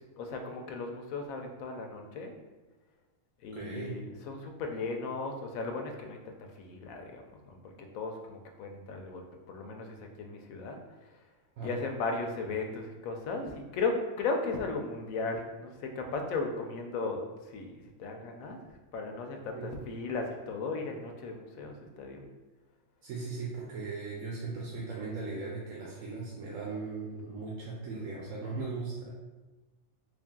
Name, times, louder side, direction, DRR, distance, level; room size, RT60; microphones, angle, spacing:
voice 1, 0.0-2.3 3.4-11.3 11.6-22.3, left 3 dB, 90° left, 3 dB, 1.0 m, -36 dB
voice 2, 3.5-4.0 11.6-11.7 19.5-19.7 23.0-29.1, right 4 dB, 80° right, -4 dB, 1.0 m, -38 dB
3.4 x 2.5 x 3.6 m, 1.2 s
omnidirectional pair, 1.4 m